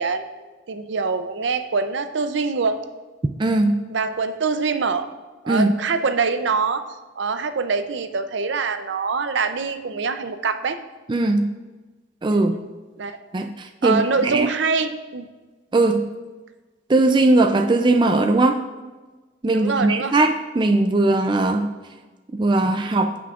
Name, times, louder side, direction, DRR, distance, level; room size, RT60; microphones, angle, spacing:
voice 1, 0.0-2.8 3.9-5.1 5.4-6.8 7.2-10.8 12.3-12.6 13.0-13.2 13.8-15.2 19.5-20.1, right 4 dB, 70° right, 9 dB, 0.6 m, -24 dB
voice 2, 3.4-3.8 5.5-5.7 11.1-11.5 12.2-12.6 13.3-14.5 15.7-16.1 16.9-18.6 19.4-21.7 22.3-23.2, right 2 dB, 25° right, 5 dB, 0.3 m, -19 dB
15.0 x 6.0 x 2.4 m, 1.3 s
head